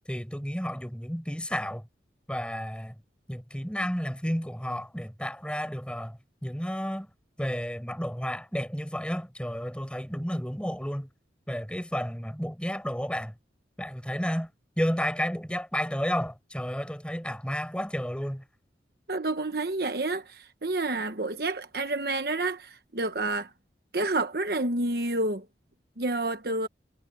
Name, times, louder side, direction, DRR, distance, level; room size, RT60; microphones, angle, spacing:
voice 1, 0.1-1.8 2.3-2.9 3.3-6.2 6.4-7.1 7.4-11.1 11.5-13.3 13.8-14.5 14.8-18.4, equal, 5° left, 7.4 m, -31 dB
voice 2, 19.1-23.5 23.9-25.5 26.0-26.7, right 2 dB, 60° right, 1.2 m, -29 dB
head